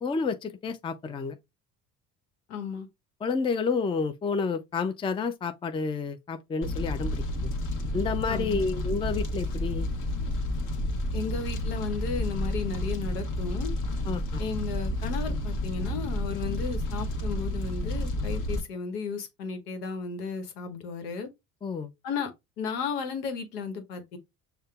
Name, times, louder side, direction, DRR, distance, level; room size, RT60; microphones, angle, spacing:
voice 1, 0.0-1.4 3.2-7.5 7.9-9.9 14.1-14.4 21.6-21.9, left 5 dB, 10° left, 0.4 m, -30 dB
voice 2, 2.5-2.9 8.3-8.7 11.1-13.7 14.4-21.3 22.0-22.3 22.6-24.2, left 5 dB, 80° left, 1.1 m, -34 dB
Fire, 6.6-18.6, left 1 dB, 45° left, 1.2 m, -30 dB
6.4 x 2.2 x 2.3 m
hypercardioid pair, 65°, 46 cm